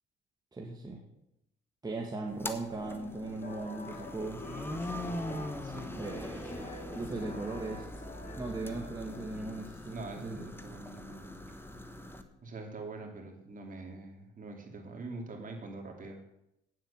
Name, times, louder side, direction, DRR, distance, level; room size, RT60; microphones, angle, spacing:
voice 1, 0.5-1.0 1.8-4.4 5.9-7.9 8.4-10.5, right 3 dB, 20° right, 0 dB, 1.7 m, -38 dB
sound 1, 2.3-12.2, left 1 dB, 10° left, 1.2 m, -42 dB
sound 2, 2.7-10.1, left 2 dB, 45° left, 2.0 m, -47 dB
voice 2, 5.6-6.0 9.9-11.4 12.4-16.2, right 3 dB, 45° right, 2 dB, 2.9 m, -44 dB
9.2 x 7.9 x 7.2 m, 0.83 s
cardioid pair, 90°, 20 cm